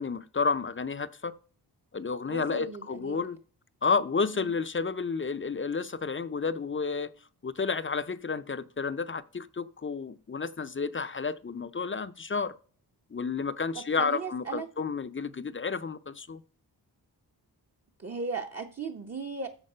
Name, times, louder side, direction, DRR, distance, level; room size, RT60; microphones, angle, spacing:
voice 1, 0.0-1.4 1.9-3.4 3.8-7.1 7.4-12.5 13.1-16.4, left 5 dB, 30° left, 0.5 m, -31 dB
voice 2, 2.3-3.2 4.3-4.5 13.7-14.7 18.0-19.5, right 4 dB, 35° right, 0.8 m, -37 dB
14.0 x 4.7 x 5.5 m
wide cardioid pair, 125°, 40 cm